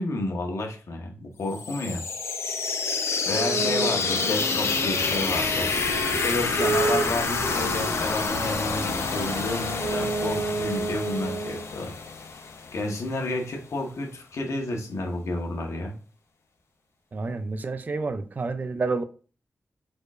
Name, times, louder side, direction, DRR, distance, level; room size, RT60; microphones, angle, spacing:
voice 1, 0.0-2.0 3.3-5.7 6.2-11.9 12.7-15.9, left 2 dB, 80° left, 1.2 m, -31 dB
sound 1, 1.5-13.2, left 4 dB, 60° left, 0.7 m, -28 dB
Wind instrument woodwind instrument, 3.3-11.6, right 3 dB, 80° right, 1.8 m, -31 dB
voice 2, 17.1-19.0, right 3 dB, 35° right, 0.4 m, -29 dB
4.9 x 4.4 x 2.4 m
wide cardioid pair, 165°, 5 cm